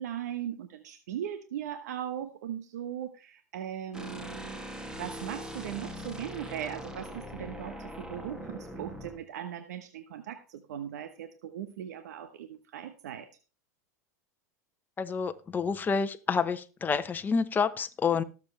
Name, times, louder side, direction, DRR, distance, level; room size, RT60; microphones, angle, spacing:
voice 1, 0.0-4.6 4.9-13.3, right 10 dB, 75° right, 9 dB, 1.1 m, -39 dB
sound 1, 3.9-9.2, equal, 10° right, 2.2 m, -41 dB
voice 2, 15.0-18.2, left 5 dB, 20° left, 8 dB, 1.0 m, -28 dB
18.5 x 7.4 x 3.3 m, 0.33 s
hypercardioid pair, 100°, 9 cm